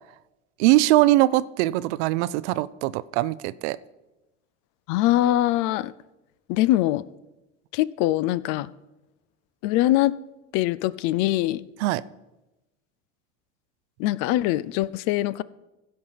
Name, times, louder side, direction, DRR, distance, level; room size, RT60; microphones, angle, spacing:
voice 1, 0.6-3.8 11.8-12.0, right 17 dB, 65° right, 18 dB, 0.5 m, -21 dB
voice 2, 4.9-5.9 6.5-7.0 7.7-8.7 9.6-10.1 10.5-11.6 14.0-15.4, left 15 dB, 55° left, 19 dB, 0.5 m, -22 dB
15.5 x 5.4 x 5.7 m, 1.0 s
hypercardioid pair, 75°, 38 cm